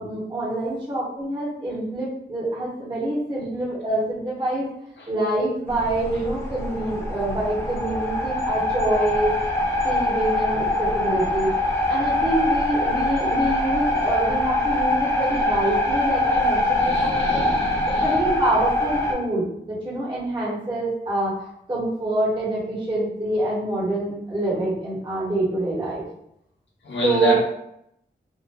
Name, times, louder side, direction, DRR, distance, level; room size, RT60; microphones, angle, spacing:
voice 1, 0.0-4.7 5.1-9.4 9.8-11.5 11.9-17.4 18.0-26.0 27.0-27.4, right 1 dB, 25° right, -7 dB, 1.0 m, -26 dB
sound 1, 5.7-19.1, left 1 dB, 15° left, 0.5 m, -23 dB
voice 2, 16.8-18.2 26.8-27.4, equal, 75° left, -2 dB, 0.7 m, -27 dB
2.8 x 2.1 x 2.2 m, 0.76 s
wide cardioid pair, 70°, 19 cm